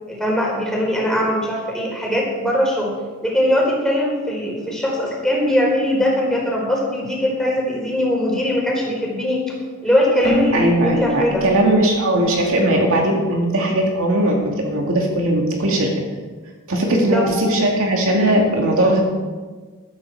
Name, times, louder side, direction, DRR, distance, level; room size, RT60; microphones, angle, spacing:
voice 1, 0.1-2.9 3.2-9.4 9.8-11.5 16.9-17.2, equal, 5° left, -3 dB, 4.4 m, -20 dB
Keyboard (musical), 10.2-13.9, left 2 dB, 25° left, 3.2 m, -29 dB
voice 2, 10.5-15.9 16.7-19.0, right 1 dB, 65° right, 0 dB, 2.4 m, -18 dB
14.5 x 13.0 x 4.8 m, 1.4 s
head